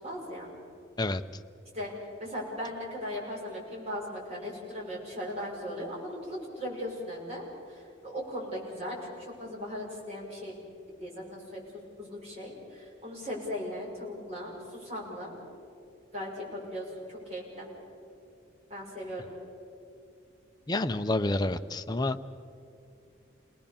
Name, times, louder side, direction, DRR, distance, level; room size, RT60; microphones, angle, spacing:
voice 1, 0.0-0.5 1.7-1.9 2.2-7.4 7.7-10.5 11.0-11.6 12.0-15.4 16.1-17.7 18.7-19.3, equal, 30° right, -4 dB, 6.2 m, -38 dB
voice 2, 20.7-22.2, left 2 dB, 20° left, 8 dB, 0.6 m, -28 dB
28.5 x 19.5 x 7.1 m, 2.5 s
head